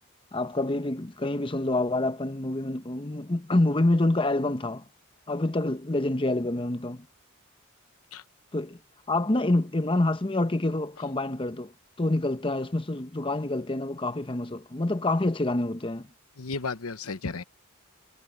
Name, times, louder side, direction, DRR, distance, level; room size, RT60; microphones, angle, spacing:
voice 1, 0.3-4.8 5.3-7.1 8.5-8.8 9.1-11.7 12.0-16.1, left 2 dB, 25° left, 0.9 m, -27 dB
voice 2, 16.4-17.4, left 4 dB, 85° left, 1.0 m, -33 dB
head